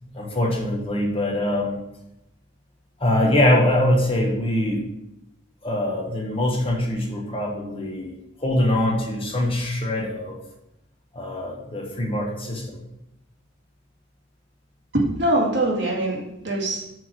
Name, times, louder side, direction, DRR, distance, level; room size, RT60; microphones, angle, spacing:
voice 1, 0.0-1.8 3.0-4.9 5.6-10.4 11.1-12.8, left 1 dB, 25° left, -1 dB, 1.2 m, -23 dB
voice 2, 14.9-16.9, right 1 dB, 60° right, -3 dB, 2.1 m, -23 dB
6.2 x 4.7 x 6.1 m, 0.88 s
head